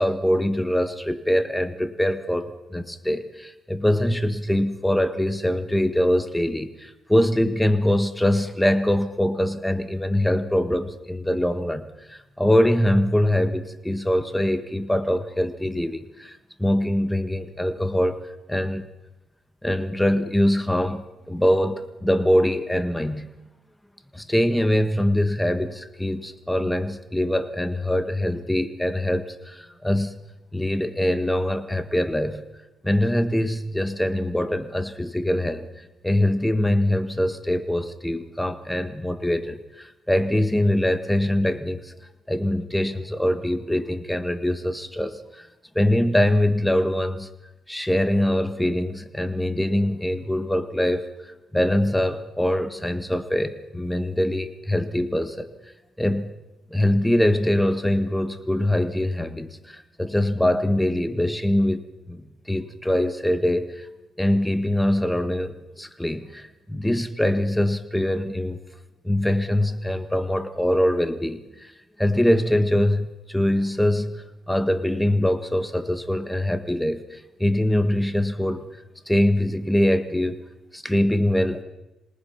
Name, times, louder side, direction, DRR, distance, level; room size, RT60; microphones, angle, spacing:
voice 1, 0.0-18.2 18.5-18.9 19.6-23.3 24.1-30.1 30.5-32.4 32.8-41.9 42.3-45.5 45.7-47.3 47.7-55.5 56.0-56.3 56.7-63.9 64.2-68.6 69.0-71.7 72.0-78.6 79.1-80.4 80.7-81.6, left 1 dB, 5° left, 10 dB, 1.7 m, -23 dB
27.0 x 19.5 x 6.0 m, 1.0 s
cardioid pair, 90°, 0 cm